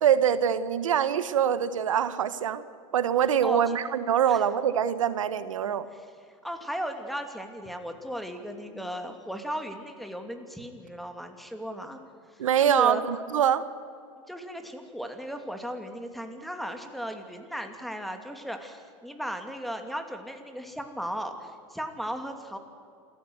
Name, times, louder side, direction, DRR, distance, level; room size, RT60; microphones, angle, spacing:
voice 1, 0.0-2.6 2.9-5.9 12.4-13.6, right 9 dB, 85° right, 14 dB, 1.0 m, -24 dB
voice 2, 3.4-3.8 4.3-4.4 5.6-6.0 6.4-12.0 12.6-13.0 14.3-22.6, equal, ahead, 6 dB, 2.7 m, -36 dB
27.0 x 15.0 x 8.0 m, 2.4 s
hypercardioid pair, 100°, 16 cm